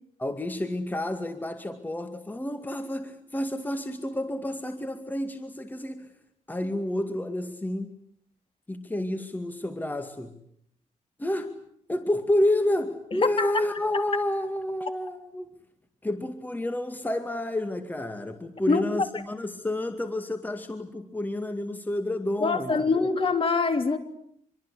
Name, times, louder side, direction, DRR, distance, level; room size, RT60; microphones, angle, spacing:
voice 1, 0.2-6.1 6.5-8.0 8.7-10.4 11.2-11.6 11.9-15.5 16.0-23.1, left 1 dB, 15° left, 2.2 m, -30 dB
voice 2, 22.4-24.0, left 4 dB, 40° left, 3.3 m, -24 dB
26.0 x 24.0 x 8.6 m
cardioid pair, 100°, 14 cm